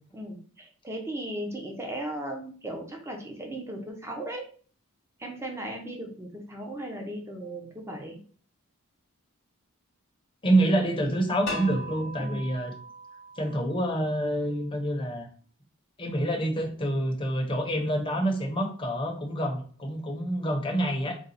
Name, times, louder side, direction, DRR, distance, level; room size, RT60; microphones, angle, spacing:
voice 1, 0.1-4.4 5.2-8.2 12.2-12.5, right 1 dB, 10° right, 2 dB, 0.7 m, -37 dB
voice 2, 10.4-12.7 13.4-15.3 16.0-21.2, right 1 dB, 25° left, 2 dB, 0.8 m, -27 dB
sound 1, 11.5-14.4, left 1 dB, 65° left, 1.0 m, -40 dB
4.0 x 2.3 x 4.1 m, 0.43 s
head